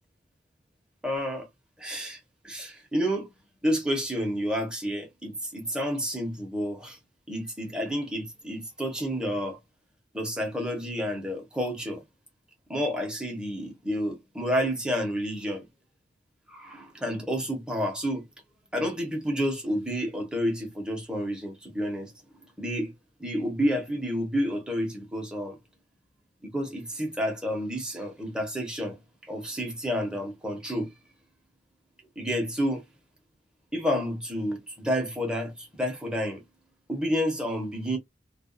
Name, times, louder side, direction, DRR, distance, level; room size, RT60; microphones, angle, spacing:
voice 1, 1.0-1.5 1.8-2.2 2.4-3.3 3.6-7.0 7.3-9.6 10.1-12.0 12.7-15.6 16.5-18.3 18.7-22.1 22.6-22.9 23.2-25.6 26.4-29.0 29.2-30.9 32.2-32.8 33.7-36.4 36.9-38.0, equal, 5° right, 0.8 m, -30 dB
2.4 x 2.2 x 2.4 m
head